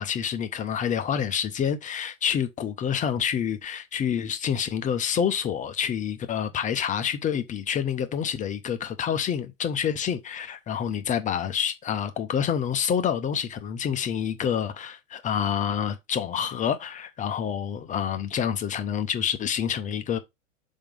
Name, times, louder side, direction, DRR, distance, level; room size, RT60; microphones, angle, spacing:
voice 1, 0.0-20.2, left 8 dB, 20° left, 0.6 m, -27 dB
5.8 x 3.7 x 5.1 m
supercardioid pair, 135°, 40 cm